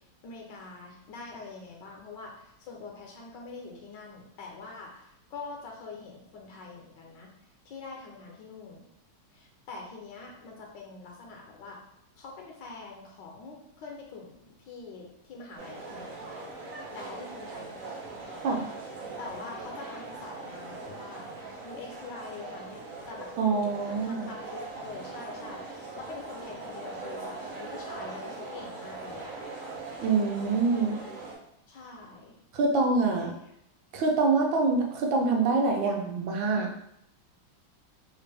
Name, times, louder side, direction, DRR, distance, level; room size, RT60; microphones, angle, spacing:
voice 1, 0.2-7.3 7.7-8.8 9.3-11.8 12.2-16.3 16.9-17.9 19.2-21.3 21.6-22.8 23.1-23.3 23.9-29.3 31.7-32.4 33.0-33.3, left 4 dB, 70° left, 0 dB, 1.3 m, -44 dB
sound 1, 15.6-31.4, right 3 dB, 60° right, 0.9 m, -41 dB
voice 2, 23.4-24.3 30.0-31.0 32.5-33.3 33.9-36.7, right 3 dB, 80° right, 1 dB, 1.4 m, -25 dB
3.5 x 2.4 x 3.3 m, 0.76 s
omnidirectional pair, 2.1 m